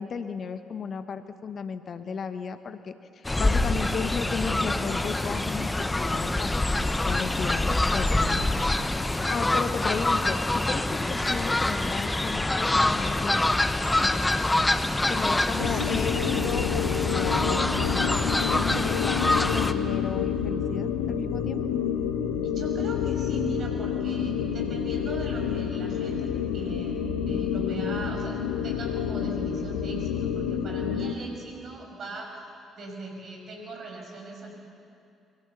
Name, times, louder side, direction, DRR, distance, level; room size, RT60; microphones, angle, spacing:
voice 1, 0.0-6.5 7.1-8.5 9.3-13.4 15.1-17.6 18.5-21.6, left 6 dB, 45° left, 10 dB, 1.1 m, -34 dB
Fowl, 3.2-19.7, left 2 dB, 15° left, 1.2 m, -25 dB
voice 2, 15.1-16.0 22.4-32.4 32.8-34.5, right 3 dB, 50° right, 2 dB, 6.0 m, -40 dB
sound 1, 15.6-31.2, left 8 dB, 70° left, 1.2 m, -28 dB
26.5 x 24.0 x 7.0 m, 2.5 s
figure-of-eight pair, 45°, 0 cm